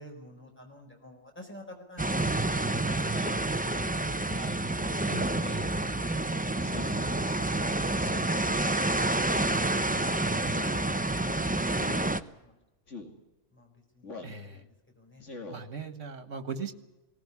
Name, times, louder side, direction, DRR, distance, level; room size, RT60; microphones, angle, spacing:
voice 1, 0.0-2.8 3.2-3.4 5.0-6.0 10.4-12.6 13.5-14.7 15.0-15.3, left 1 dB, 10° left, 2 dB, 4.5 m, -51 dB
sound 1, 2.0-12.2, right 2 dB, 10° right, 0.5 m, -28 dB
Speech synthesizer, 3.1-3.4 4.3-4.7 5.4-5.7 6.6-7.1 8.0-8.4 9.3-9.6 10.5-10.8 11.8-12.0 12.9-13.1 14.0-14.4 15.2-15.6, left 3 dB, 70° left, 2.9 m, -43 dB
voice 2, 5.1-5.6 14.2-14.6 15.5-16.7, right 4 dB, 70° right, 11 dB, 1.9 m, -39 dB
19.5 x 17.5 x 9.7 m, 1.0 s
omnidirectional pair, 1.3 m